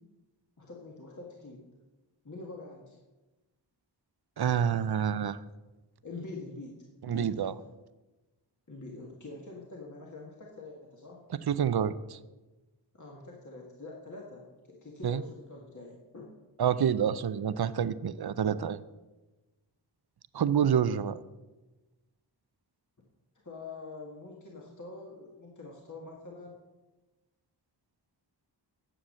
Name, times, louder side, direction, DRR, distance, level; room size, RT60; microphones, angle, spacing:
voice 1, 0.6-1.6 2.2-3.0 6.0-7.4 8.7-11.3 12.9-16.3 23.4-26.5, left 3 dB, 40° left, -1 dB, 1.6 m, -45 dB
voice 2, 4.4-5.4 7.1-7.5 11.5-12.2 15.0-15.2 16.6-18.8 20.3-21.2, right 8 dB, 60° right, 15 dB, 0.6 m, -28 dB
9.7 x 7.2 x 6.4 m, 1.1 s
wide cardioid pair, 75°, 44 cm